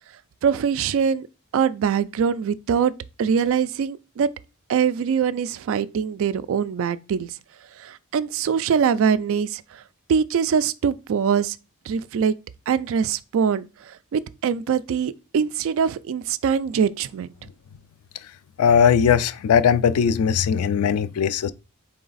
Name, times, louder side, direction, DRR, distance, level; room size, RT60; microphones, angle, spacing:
voice 1, 0.4-1.3 1.5-2.9 3.2-4.3 4.7-7.3 7.8-9.6 10.1-11.6 11.9-12.4 12.7-13.7 14.1-17.3, right 7 dB, 65° right, 0.3 m, -23 dB
voice 2, 18.6-21.5, left 7 dB, 90° left, 0.3 m, -19 dB
3.9 x 3.3 x 3.9 m
head